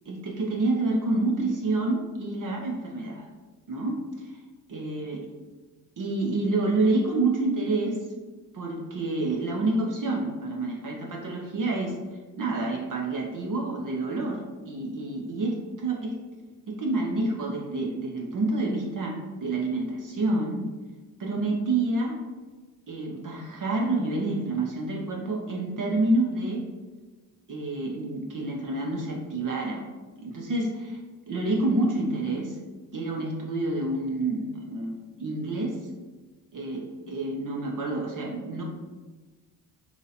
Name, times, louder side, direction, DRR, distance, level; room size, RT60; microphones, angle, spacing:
voice 1, 0.1-3.3 3.7-4.3 4.7-5.2 6.0-8.1 8.5-12.0 12.4-16.1 16.7-20.7 21.2-22.2 22.9-26.6 27.5-29.8 30.2-31.0 31.3-32.6 32.9-35.8 36.5-38.6, right 2 dB, 40° right, -1 dB, 0.8 m, -28 dB
2.9 x 2.9 x 4.0 m, 1.3 s
hypercardioid pair, 45°, 48 cm